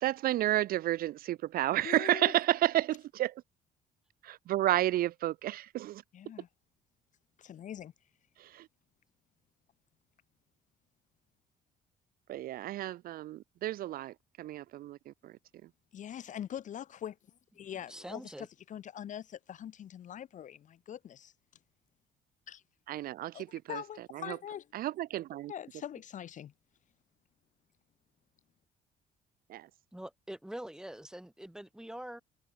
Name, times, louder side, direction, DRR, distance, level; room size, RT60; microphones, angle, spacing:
voice 1, 0.0-3.4 4.2-6.0 8.4-8.7 12.3-15.7 22.9-24.4 24.7-25.5 29.5-29.7, right 14 dB, 60° right, 0.5 m, -32 dB
voice 2, 1.8-2.3 6.1-6.5 7.4-7.9 15.9-17.2 17.5-21.3 22.5-22.6 23.3-24.6 25.5-26.5, left 10 dB, 50° left, 1.0 m, -43 dB
voice 3, 17.7-18.5 29.9-32.2, right 1 dB, 5° right, 2.2 m, -44 dB
cardioid pair, 110°, 17 cm